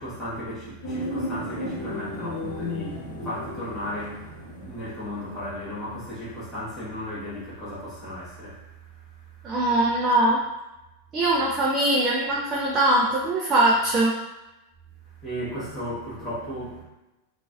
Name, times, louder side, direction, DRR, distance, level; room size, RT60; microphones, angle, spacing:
voice 1, 0.0-9.5 15.2-16.8, equal, 10° left, -11 dB, 1.2 m, -35 dB
sound 1, 0.8-6.1 6.4-6.5, left 1 dB, 65° left, 0.9 m, -34 dB
voice 2, 9.4-10.4 11.1-14.1, right 1 dB, 25° right, -4 dB, 0.4 m, -21 dB
3.8 x 2.5 x 2.3 m, 1.0 s
figure-of-eight pair, 90°, 0 cm